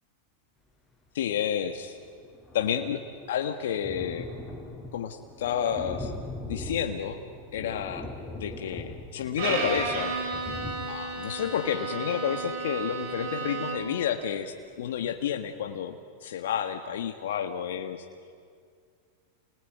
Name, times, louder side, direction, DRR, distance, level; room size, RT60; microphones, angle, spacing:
voice 1, 1.1-2.0 2.5-3.0 3.3-4.3 4.9-6.1 6.5-7.2 7.5-8.1 8.4-10.1 10.9-15.9 16.2-18.0, left 9 dB, 75° left, 5 dB, 1.5 m, -30 dB
Thunder, 1.7-14.3 14.8-14.9 15.2-15.3, left 2 dB, 5° left, 5.5 m, -42 dB
Bowed string instrument, 9.4-14.0, right 4 dB, 55° right, 5.2 m, -33 dB
29.0 x 20.0 x 9.4 m, 2.2 s
hypercardioid pair, 115°, 0 cm